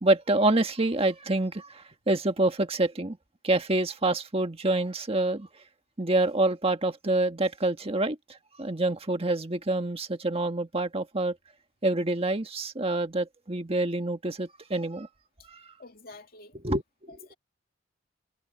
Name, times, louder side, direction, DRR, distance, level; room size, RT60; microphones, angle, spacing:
voice 1, 0.0-3.2 3.4-5.5 6.0-8.2 8.6-11.3 11.8-15.1 16.6-17.2, right 2 dB, 30° right, 1.6 m, -27 dB
voice 2, 15.8-16.6 17.1-17.3, left 3 dB, 50° left, 2.3 m, -48 dB
head